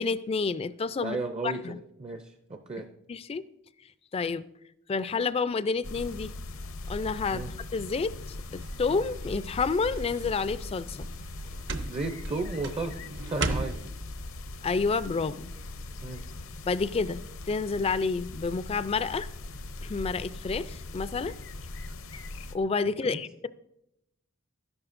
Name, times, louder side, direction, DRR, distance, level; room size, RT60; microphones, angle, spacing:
voice 1, 0.0-1.2 1.4-1.8 3.1-3.4 4.1-4.5 4.9-6.3 6.9-7.4 7.7-11.1 14.6-15.5 16.6-19.3 19.8-21.3 22.5-23.5, left 4 dB, 30° left, 15 dB, 0.3 m, -29 dB
voice 2, 1.0-2.9 7.3-7.5 11.9-13.0 13.3-13.9 16.0-16.2 23.0-23.2, right 3 dB, 30° right, 6 dB, 0.5 m, -34 dB
sound 1, 5.8-22.6, left 2 dB, 70° left, 0.7 m, -40 dB
sound 2, 8.4-13.9, right 2 dB, 60° right, 0.8 m, -37 dB
12.5 x 11.0 x 2.5 m, 0.82 s
head